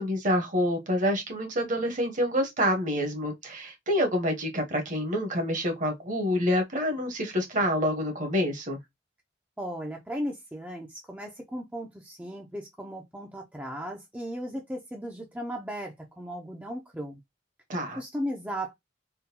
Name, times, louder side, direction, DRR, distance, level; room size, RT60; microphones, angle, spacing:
voice 1, 0.0-8.8 17.7-18.0, equal, 45° right, 1.0 m, -27 dB
voice 2, 9.6-17.2 18.0-18.7, equal, 10° right, 0.5 m, -36 dB
3.6 x 2.2 x 2.7 m
head